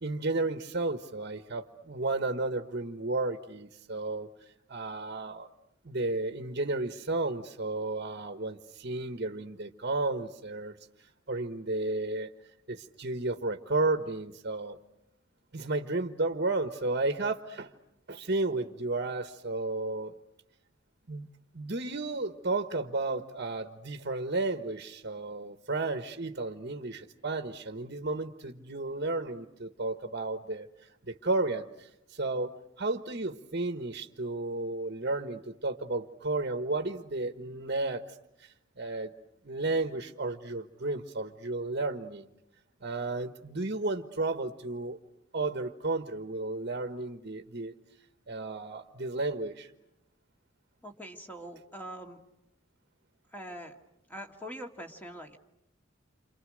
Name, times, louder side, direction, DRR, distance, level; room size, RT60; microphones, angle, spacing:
voice 1, 0.0-5.5 5.8-10.8 11.3-12.3 12.7-14.8 15.5-17.7 18.1-20.1 21.1-21.3 21.5-39.1 39.4-42.3 42.8-45.0 45.3-47.7 48.3-49.7, right 2 dB, 50° right, 7 dB, 1.4 m, -33 dB
voice 2, 50.8-52.2 53.3-53.8 54.1-55.4, equal, 10° left, 3 dB, 2.3 m, -43 dB
29.5 x 27.0 x 6.5 m, 0.86 s
head